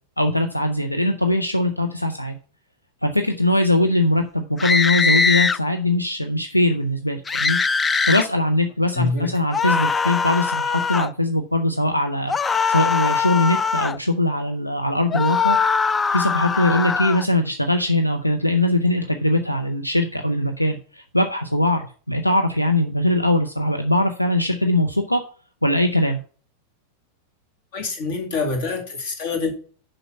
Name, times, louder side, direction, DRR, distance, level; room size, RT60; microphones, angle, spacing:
voice 1, 0.2-2.4 3.0-7.6 8.1-12.3 12.7-15.6 16.1-25.2 25.6-26.2, left 1 dB, 85° left, 0.6 m, -21 dB
sound 1, 4.6-5.6 7.3-8.3 9.5-11.1 12.3-14.0 15.1-17.2, left 5 dB, 15° left, 0.3 m, -21 dB
voice 2, 8.9-9.3 27.7-29.5, left 3 dB, 55° left, 2.2 m, -25 dB
6.9 x 5.5 x 5.5 m
figure-of-eight pair, 90°, 0 cm